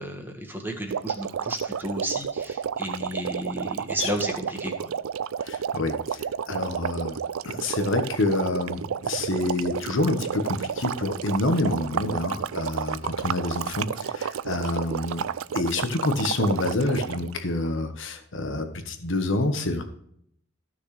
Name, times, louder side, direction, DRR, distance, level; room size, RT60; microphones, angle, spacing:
voice 1, 0.0-4.9, equal, 10° right, 2 dB, 1.7 m, -33 dB
sound 1, 0.9-17.3, right 7 dB, 85° right, 0.4 m, -31 dB
voice 2, 5.4-7.2 7.4-19.8, left 2 dB, 65° left, 7 dB, 1.4 m, -27 dB
14.5 x 6.4 x 3.3 m, 0.69 s
head